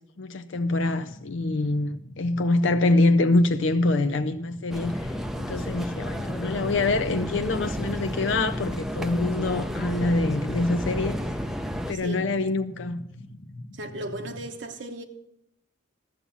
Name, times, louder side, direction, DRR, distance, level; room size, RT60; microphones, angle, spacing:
voice 1, 0.2-5.1 5.4-11.2 11.9-13.0, left 2 dB, 70° left, 0.5 m, -25 dB
sound 1, 0.5-14.5, left 1 dB, 40° left, 1.1 m, -44 dB
sound 2, 4.7-11.9, equal, ahead, 0.5 m, -32 dB
voice 2, 11.9-12.3 13.7-15.0, right 1 dB, 65° right, 1.0 m, -36 dB
13.0 x 7.1 x 7.1 m
head